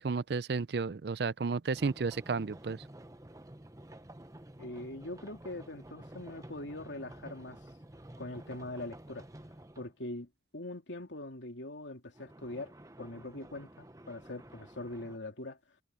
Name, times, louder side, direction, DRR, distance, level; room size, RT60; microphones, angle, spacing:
voice 1, 0.0-2.8, right 4 dB, 60° right, 0.5 m, -32 dB
sound 1, 1.7-9.9 12.1-15.2, right 1 dB, 20° right, 0.9 m, -51 dB
voice 2, 4.6-7.6 8.2-9.3 9.8-12.7 13.0-15.6, left 2 dB, 80° left, 2.6 m, -42 dB
head